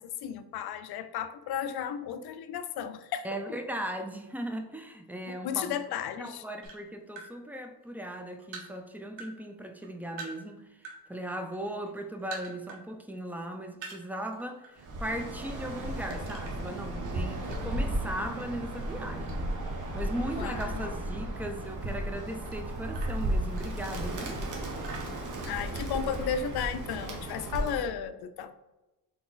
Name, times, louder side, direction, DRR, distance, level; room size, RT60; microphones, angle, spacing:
voice 1, 0.0-3.6 5.3-6.4 20.4-20.8 25.4-28.5, left 8 dB, 65° left, 11 dB, 0.5 m, -34 dB
voice 2, 3.2-5.8 6.2-19.5 19.9-24.4, right 1 dB, 5° right, 5 dB, 0.3 m, -38 dB
sound 1, 6.6-7.3 7.8-9.3 9.6-11.0 11.3-12.8 13.2-13.3 13.7-14.7 15.1-15.3 16.3-17.9 18.4-19.7 20.0-21.6 22.1-24.2 24.8-26.1, right 4 dB, 85° right, 1.2 m, -46 dB
Bird, 14.8-27.9, right 1 dB, 45° right, 1.1 m, -34 dB
4.1 x 3.3 x 3.9 m, 1.0 s
cardioid pair, 125°, 41 cm